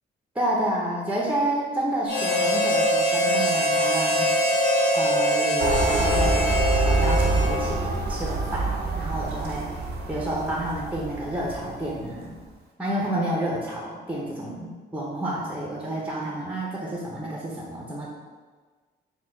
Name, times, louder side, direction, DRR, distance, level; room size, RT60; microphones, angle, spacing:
voice 1, 0.3-4.3 4.9-6.5 6.8-8.7 9.0-12.3 12.8-18.1, right 1 dB, 5° right, -3 dB, 0.6 m, -29 dB
Harmonica, 2.1-7.9, equal, 90° left, 0.7 m, -23 dB
sound 1, 5.6-12.1, right 2 dB, 60° right, 0.6 m, -26 dB
4.3 x 2.2 x 4.4 m, 1.4 s
cardioid pair, 135°, 18 cm